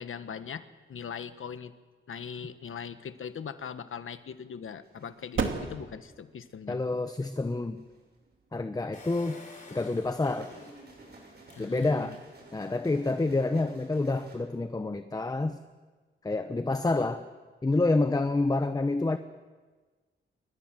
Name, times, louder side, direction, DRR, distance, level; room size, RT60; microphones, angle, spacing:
voice 1, 0.0-1.7 2.1-6.8 11.6-12.2, left 7 dB, 90° left, 11 dB, 1.3 m, -40 dB
sound 1, 3.0-10.0, right 5 dB, 75° right, 2.6 m, -39 dB
sound 2, 4.8-5.5 7.4-8.1 10.0-14.4, right 2 dB, 55° right, 7.2 m, -53 dB
voice 2, 6.7-7.8 8.5-9.4 9.7-10.5 11.6-12.2 12.5-15.6 16.2-17.2 17.6-19.2, left 2 dB, 20° left, 9 dB, 0.9 m, -28 dB
Engine, 8.9-12.4 12.9-13.0 13.1-13.2, left 2 dB, 40° left, 5.7 m, -51 dB
28.5 x 24.0 x 7.6 m, 1.4 s
wide cardioid pair, 175°, 20 cm